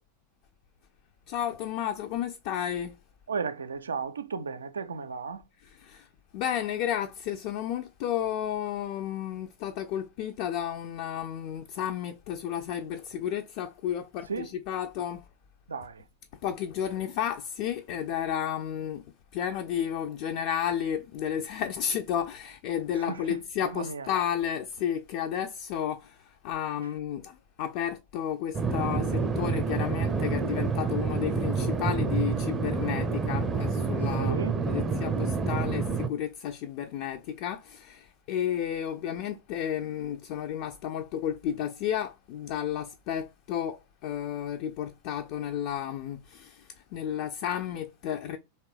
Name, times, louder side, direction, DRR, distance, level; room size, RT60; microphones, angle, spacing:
voice 1, 1.3-2.9 5.6-6.1 6.3-15.2 16.4-19.0 19.3-48.4, left 9 dB, 45° left, 0.4 m, -32 dB
voice 2, 3.3-5.4 14.3-14.5 15.7-16.0 22.9-24.1 34.2-34.6, right 5 dB, 70° right, 0.4 m, -35 dB
sound 1, 28.5-36.1, right 4 dB, 20° right, 0.6 m, -28 dB
3.2 x 3.0 x 4.7 m
figure-of-eight pair, 90°, 0 cm